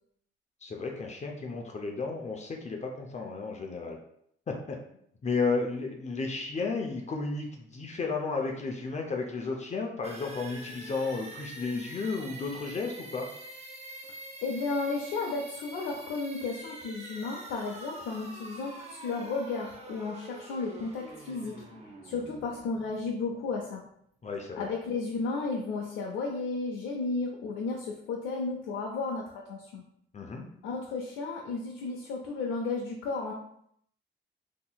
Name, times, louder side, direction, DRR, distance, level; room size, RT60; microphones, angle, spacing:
voice 1, 0.6-4.0 4.5-4.8 5.2-13.3 24.2-24.7 30.1-30.5, left 4 dB, 35° left, 1 dB, 0.6 m, -33 dB
sound 1, 10.0-23.7, right 2 dB, 30° right, 0.7 m, -46 dB
voice 2, 14.4-21.6 22.0-23.8 24.6-29.8 30.6-33.3, left 3 dB, 90° left, -1 dB, 0.6 m, -33 dB
3.9 x 2.9 x 2.2 m, 0.70 s
cardioid pair, 90°, 20 cm